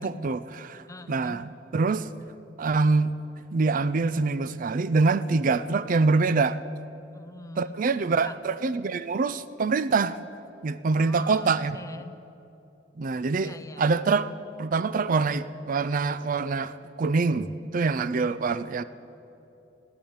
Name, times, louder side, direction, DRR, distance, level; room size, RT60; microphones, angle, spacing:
voice 1, 0.0-2.1 2.6-3.1 3.5-6.6 7.6-10.2 10.6-11.8 13.0-14.3 14.6-18.8, right 4 dB, 45° right, 0.4 m, -25 dB
voice 2, 0.9-1.5 7.1-7.8 8.2-8.4 10.9-12.1 13.4-13.9, left 2 dB, 20° left, 0.6 m, -44 dB
16.0 x 10.0 x 8.8 m
head